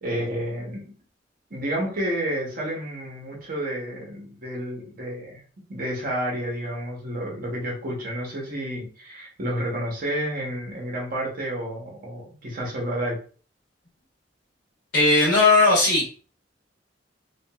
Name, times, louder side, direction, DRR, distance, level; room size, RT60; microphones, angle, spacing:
voice 1, 0.0-0.9 1.5-5.4 5.7-13.2, equal, 50° right, -2 dB, 0.9 m, -30 dB
voice 2, 14.9-16.2, left 2 dB, 65° left, -2 dB, 0.8 m, -18 dB
2.8 x 2.4 x 2.2 m, 0.40 s
head